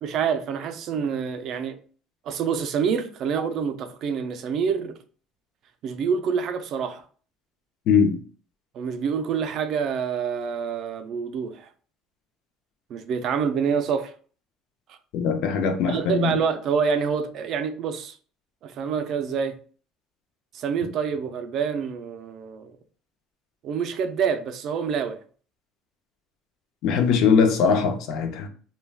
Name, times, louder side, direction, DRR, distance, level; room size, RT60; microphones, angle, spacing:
voice 1, 0.0-1.8 2.2-4.9 5.8-7.0 8.7-11.7 12.9-14.1 14.9-15.0 15.9-18.2 18.6-19.6 20.5-22.7 23.6-25.2, right 6 dB, 45° right, 0.3 m, -27 dB
voice 2, 7.9-8.2 15.1-16.4 26.8-28.5, left 6 dB, 60° left, 0.5 m, -21 dB
2.3 x 2.2 x 3.3 m
cardioid pair, 155°, 0 cm